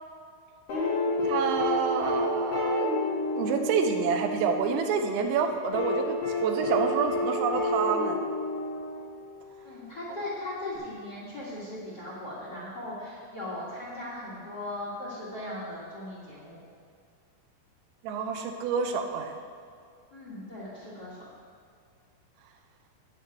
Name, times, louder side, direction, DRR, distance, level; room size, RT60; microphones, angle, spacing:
sound 1, 0.7-4.8 5.7-9.3 10.8-10.9, left 2 dB, 50° left, 3.8 m, -29 dB
voice 1, 1.2-2.9 3.4-8.2 18.0-19.4, right 5 dB, 85° right, 5 dB, 3.1 m, -28 dB
voice 2, 9.6-16.6 20.1-21.2, left 1 dB, 85° left, -7 dB, 0.9 m, -38 dB
14.0 x 9.6 x 3.0 m, 2.3 s
omnidirectional pair, 5.2 m